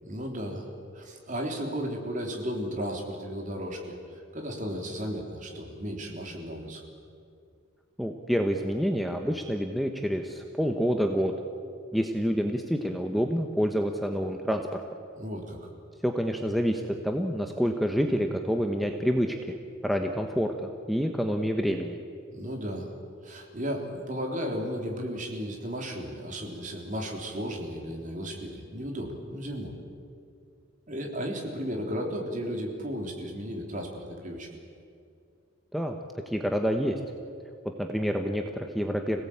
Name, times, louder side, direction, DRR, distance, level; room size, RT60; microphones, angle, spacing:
voice 1, 0.0-6.8 15.2-15.7 22.3-22.9 23.2-29.8 30.9-34.5, equal, 40° right, 1 dB, 3.6 m, -34 dB
voice 2, 8.0-11.3 11.9-14.8 16.0-19.6 19.8-22.0 35.7-36.0 36.3-37.0 37.8-39.2, equal, ahead, 4 dB, 1.0 m, -28 dB
26.0 x 17.5 x 8.8 m, 2.4 s
head